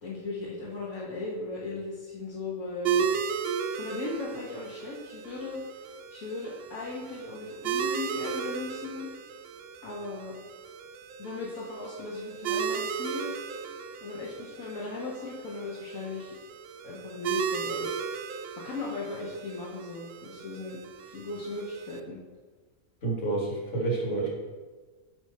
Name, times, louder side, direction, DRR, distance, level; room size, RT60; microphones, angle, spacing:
voice 1, 0.0-3.2 3.8-5.6 6.1-9.1 9.8-10.4 11.2-13.3 14.0-16.4 16.8-17.9 18.6-22.2, left 3 dB, 65° left, -6 dB, 1.6 m, -37 dB
sound 1, 2.8-22.0, right 7 dB, 65° right, 0.6 m, -35 dB
voice 2, 23.0-24.3, right 3 dB, 50° left, -2 dB, 2.2 m, -29 dB
10.5 x 5.0 x 4.2 m, 1.4 s
omnidirectional pair, 1.6 m